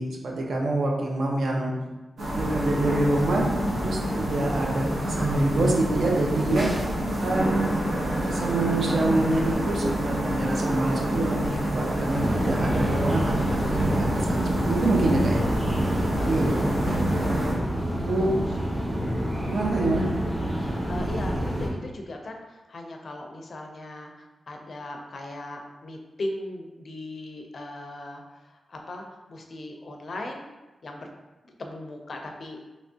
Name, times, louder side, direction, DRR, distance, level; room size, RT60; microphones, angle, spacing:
voice 1, 0.0-1.7 2.3-3.4 3.8-6.7 7.2-7.8 8.2-15.4 16.3-16.5 18.1-18.4 19.5-20.1, right 2 dB, 65° right, -1 dB, 0.6 m, -26 dB
sound 1, 2.2-17.5, right 1 dB, 90° right, 0.9 m, -27 dB
sound 2, 12.1-21.7, equal, 15° right, 0.6 m, -28 dB
voice 2, 15.9-16.7 18.4-18.5 19.0-19.3 20.5-30.5 30.8-31.1 31.4-32.6, left 1 dB, 50° left, 2 dB, 0.4 m, -39 dB
3.3 x 2.9 x 2.7 m, 1.1 s
wide cardioid pair, 165°, 0 cm